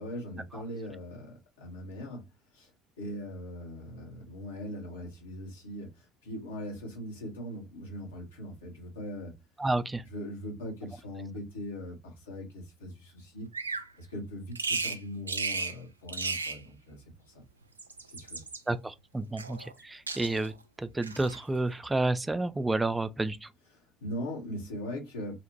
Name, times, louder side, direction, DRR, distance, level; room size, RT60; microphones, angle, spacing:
voice 1, 0.0-2.3 2.5-2.7 3.0-9.3 10.1-13.5 14.0-17.0 17.3-17.4 18.1-18.4 23.7-25.4, equal, 80° left, 0.9 m, -40 dB
voice 2, 9.6-10.0 18.7-23.5, right 2 dB, 15° right, 0.3 m, -30 dB
Bird vocalization bird call bird song, 13.5-13.9 14.6-15.0 15.3-15.8 16.1-16.6 17.6-18.6 19.4-19.8 20.1-20.5 21.0-21.4, right 4 dB, 90° right, 0.4 m, -34 dB
2.8 x 2.1 x 2.8 m
figure-of-eight pair, 60°, 0 cm